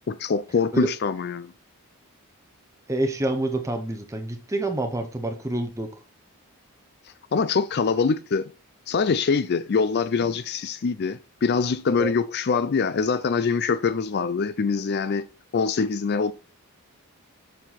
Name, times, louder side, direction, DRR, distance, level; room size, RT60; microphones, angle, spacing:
voice 1, 0.1-1.5 7.3-8.5 8.9-15.3 15.5-16.3, left 5 dB, 45° left, 0.4 m, -24 dB
voice 2, 2.9-5.9 12.0-12.1, right 2 dB, 15° right, 0.8 m, -27 dB
7.0 x 5.8 x 4.2 m
head